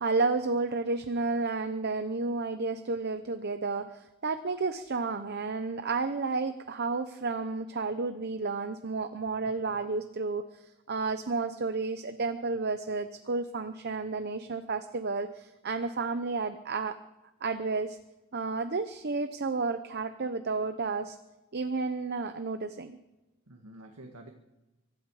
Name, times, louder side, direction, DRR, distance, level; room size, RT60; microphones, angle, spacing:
voice 1, 0.0-17.0 17.4-18.0 18.3-21.2 21.5-23.0, right 3 dB, 50° right, 9 dB, 0.8 m, -31 dB
voice 2, 9.4-9.8 23.5-24.3, right 1 dB, 90° right, 2 dB, 1.9 m, -49 dB
24.0 x 12.0 x 4.9 m, 1.0 s
head